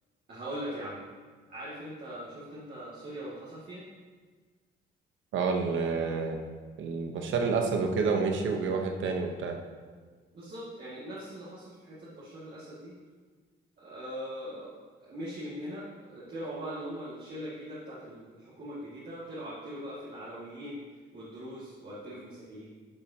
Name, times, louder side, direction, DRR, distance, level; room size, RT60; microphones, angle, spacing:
voice 1, 0.3-1.0 1.5-3.8 10.3-12.9 13.8-14.7 15.0-20.8 21.1-22.6, equal, 55° right, -9 dB, 2.0 m, -41 dB
voice 2, 5.3-6.4 6.8-9.6, right 4 dB, 75° right, 3 dB, 0.9 m, -29 dB
10.5 x 5.3 x 2.8 m, 1.5 s
cardioid pair, 90°, 20 cm